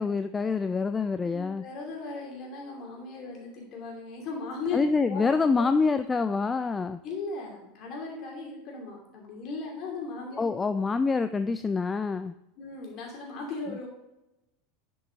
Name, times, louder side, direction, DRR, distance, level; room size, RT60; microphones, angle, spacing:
voice 1, 0.0-1.6 4.7-7.0 10.4-12.3, left 4 dB, 15° left, 10 dB, 0.3 m, -26 dB
voice 2, 1.3-5.2 5.6-5.7 7.0-10.4 12.6-13.9, left 4 dB, 40° left, -1 dB, 2.7 m, -37 dB
10.5 x 5.4 x 3.7 m, 0.90 s
figure-of-eight pair, 80°, 0 cm